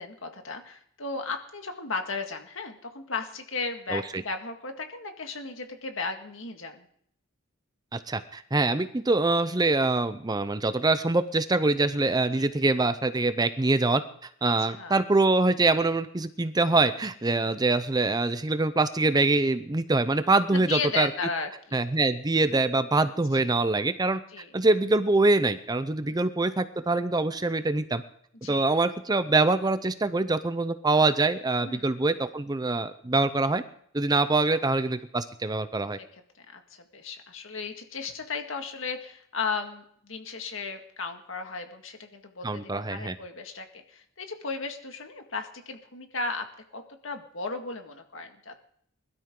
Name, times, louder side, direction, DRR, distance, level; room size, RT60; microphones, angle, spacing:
voice 1, 0.0-6.9 12.3-12.5 14.6-15.0 17.3-17.6 20.5-21.9 23.5-23.6 24.3-24.5 26.0-26.3 28.4-28.7 31.6-32.0 36.1-36.2 36.5-42.6 42.9-46.4 46.7-48.6, left 4 dB, 65° left, 5 dB, 2.0 m, -35 dB
voice 2, 3.9-4.2 7.9-21.1 21.7-24.2 24.5-28.0 28.5-33.6 33.9-36.0 42.4-43.2, right 2 dB, 20° right, 12 dB, 0.6 m, -24 dB
21.0 x 12.5 x 3.8 m, 0.65 s
head